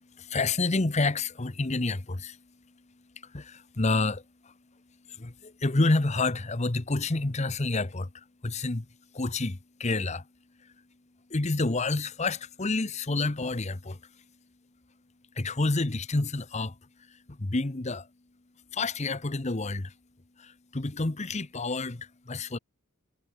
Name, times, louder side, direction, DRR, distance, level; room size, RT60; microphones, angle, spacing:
voice 1, 0.2-2.4 3.2-4.5 5.1-8.9 9.1-10.2 10.6-10.7 11.3-14.0 15.4-16.8 17.1-18.1 18.7-19.9 20.4-22.6, left 2 dB, 30° left, 1.0 m, -29 dB
head